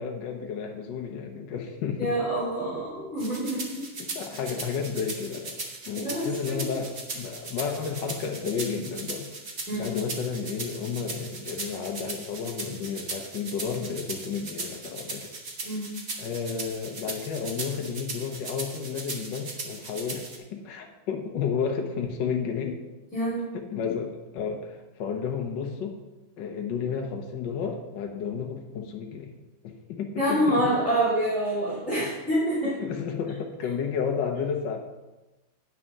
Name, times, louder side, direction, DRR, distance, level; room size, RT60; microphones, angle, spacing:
voice 1, 0.0-2.1 4.0-5.6 5.9-9.3 9.7-15.3 16.2-22.8 23.5-26.0 26.4-29.3 29.6-30.7 32.0-32.1 32.6-34.8, left 6 dB, 70° left, 2 dB, 1.5 m, -32 dB
voice 2, 2.0-3.9 5.9-6.6 9.7-9.9 15.6-15.9 23.1-23.4 30.2-32.8, right 1 dB, 5° left, -11 dB, 3.2 m, -27 dB
sound 1, 3.2-20.4, right 3 dB, 40° right, 1.3 m, -38 dB
9.6 x 6.1 x 5.4 m, 1.1 s
omnidirectional pair, 2.1 m